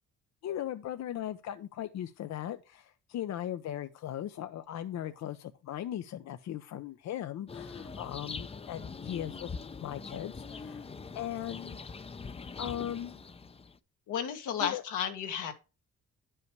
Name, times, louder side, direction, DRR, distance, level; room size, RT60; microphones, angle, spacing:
voice 1, 0.4-9.5 9.8-11.8 12.6-13.2 14.6-14.8, left 11 dB, 65° left, 0.6 m, -38 dB
sound 1, 7.5-13.8, left 4 dB, 20° left, 0.5 m, -43 dB
voice 2, 14.1-15.5, left 8 dB, 85° left, 1.7 m, -33 dB
9.5 x 5.6 x 4.5 m
cardioid pair, 90°, 30 cm